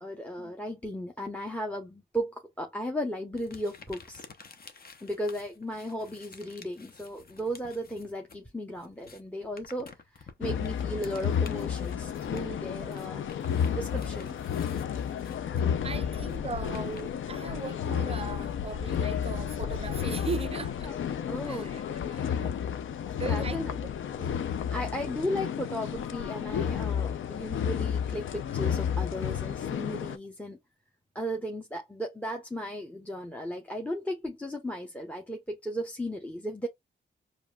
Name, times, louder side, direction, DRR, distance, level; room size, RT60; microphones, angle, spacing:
voice 1, 0.0-4.2 5.0-13.2 13.7-14.4 20.8-21.0 21.3-21.7 23.2-23.7 24.5-30.6 31.1-36.7, equal, 5° left, 0.8 m, -35 dB
sound 1, 3.4-8.4 8.7-17.8, left 5 dB, 50° left, 0.8 m, -52 dB
sound 2, 10.4-30.2, left 8 dB, 85° left, 0.5 m, -31 dB
voice 2, 15.8-20.9 21.5-22.6 23.1-23.9 24.2-24.4 30.1-30.2, right 5 dB, 30° right, 0.4 m, -39 dB
4.8 x 2.5 x 2.3 m
cardioid pair, 65°, 20 cm